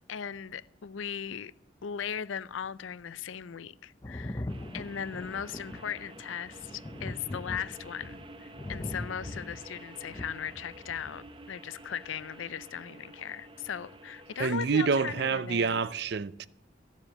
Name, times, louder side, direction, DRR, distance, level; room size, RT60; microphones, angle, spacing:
voice 1, 0.0-1.5 1.8-4.5 4.7-15.8, left 8 dB, 85° left, 0.5 m, -38 dB
Thunder, 4.0-11.4 12.5-12.6, left 1 dB, 20° left, 0.5 m, -41 dB
sound 1, 4.5-15.9, right 2 dB, 25° right, 0.8 m, -50 dB
voice 2, 14.4-16.5, right 5 dB, 55° right, 0.5 m, -27 dB
14.5 x 7.4 x 7.6 m
head